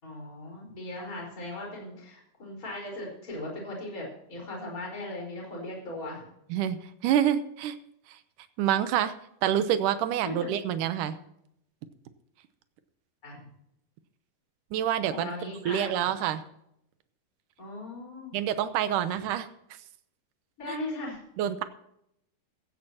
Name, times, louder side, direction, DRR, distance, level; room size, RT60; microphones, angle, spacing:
voice 1, 0.0-6.2 10.2-10.5 13.2-13.4 15.1-15.9 17.6-18.4 20.6-21.2, left 2 dB, 20° left, -1 dB, 4.7 m, -38 dB
voice 2, 6.5-7.8 8.6-9.1 9.4-11.2 14.7-15.3 15.7-16.4 18.3-19.5 20.7-20.8 21.4-21.6, right 10 dB, 75° right, 11 dB, 2.0 m, -27 dB
15.5 x 15.0 x 2.9 m, 0.76 s
omnidirectional pair, 4.5 m